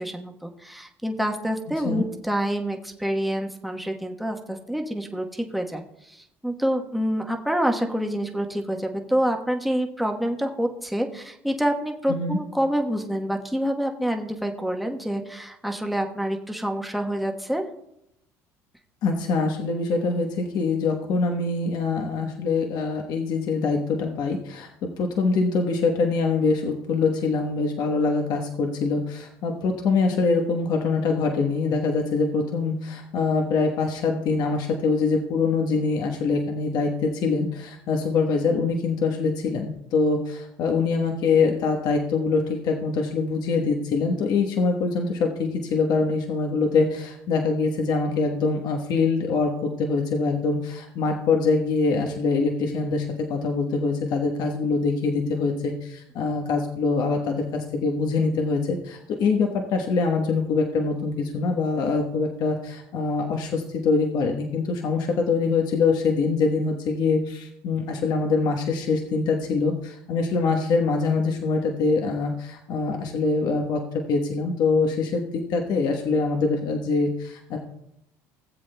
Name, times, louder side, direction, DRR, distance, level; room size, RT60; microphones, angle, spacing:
voice 1, 0.0-17.6, equal, ahead, 3 dB, 1.1 m, -27 dB
voice 2, 19.0-77.6, left 4 dB, 60° left, 3 dB, 1.1 m, -24 dB
17.5 x 7.7 x 2.2 m, 0.79 s
supercardioid pair, 80°, 8 cm